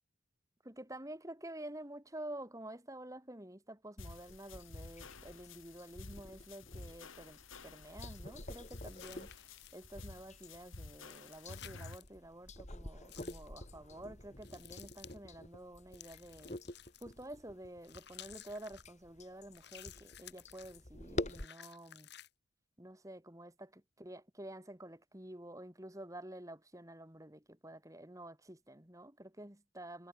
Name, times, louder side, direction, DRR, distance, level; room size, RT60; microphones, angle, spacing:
voice 1, 0.6-16.6 17.0-22.1 22.8-30.1, right 1 dB, 15° right, 2.8 m, -50 dB
sound 1, 4.0-12.0, left 3 dB, 80° left, 2.2 m, -52 dB
sound 2, 4.3-21.5, left 1 dB, 35° left, 3.1 m, -48 dB
sound 3, 8.6-9.9 11.0-12.1 13.1-13.5 14.4-15.2 15.9-17.3 17.8-18.9 19.5-20.8 21.3-22.3, left 12 dB, 55° left, 4.1 m, -55 dB
head